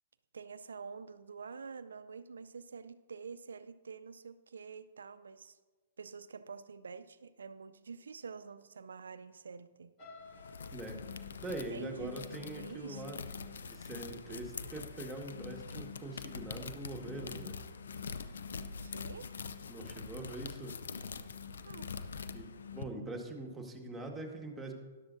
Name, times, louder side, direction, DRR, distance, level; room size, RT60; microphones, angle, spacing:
voice 1, 0.3-5.6 6.0-9.9 11.7-12.2 12.6-13.2 18.8-19.4 21.6-21.9, right 5 dB, 75° right, 13 dB, 0.5 m, -47 dB
sound 1, 10.0-13.9 14.4-14.7 15.1-15.2, left 3 dB, 35° left, 2.7 m, -58 dB
sound 2, 10.2-22.8, left 5 dB, 70° left, 0.6 m, -44 dB
voice 2, 10.7-11.0 11.4-13.2 13.7-17.6 19.7-20.8 22.3-24.7, right 2 dB, 10° right, 0 dB, 1.7 m, -43 dB
13.0 x 11.5 x 2.7 m, 1.3 s
figure-of-eight pair, 120°, 0 cm